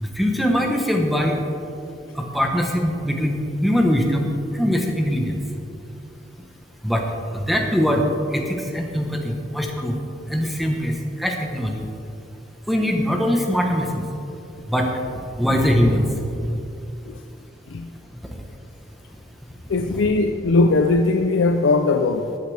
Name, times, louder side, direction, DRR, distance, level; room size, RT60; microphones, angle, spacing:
voice 1, 0.0-1.4 2.2-5.4 6.8-7.0 7.3-8.0 8.3-10.0 10.3-11.9 12.7-14.0 14.7-14.9 15.4-16.1 19.9-20.0, equal, ahead, 1 dB, 0.9 m, -22 dB
voice 2, 19.7-22.4, left 3 dB, 75° left, 6 dB, 0.4 m, -19 dB
14.0 x 9.5 x 3.3 m, 2.7 s
head